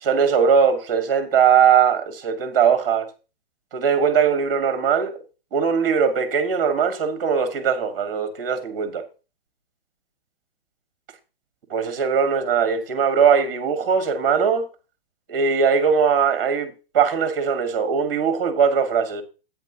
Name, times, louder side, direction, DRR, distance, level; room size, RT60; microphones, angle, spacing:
voice 1, 0.0-3.1 3.7-5.1 5.5-9.1 11.7-14.7 15.3-19.2, right 6 dB, 20° right, 1.5 m, -20 dB
10.5 x 8.8 x 2.8 m
hypercardioid pair, 180°, 31 cm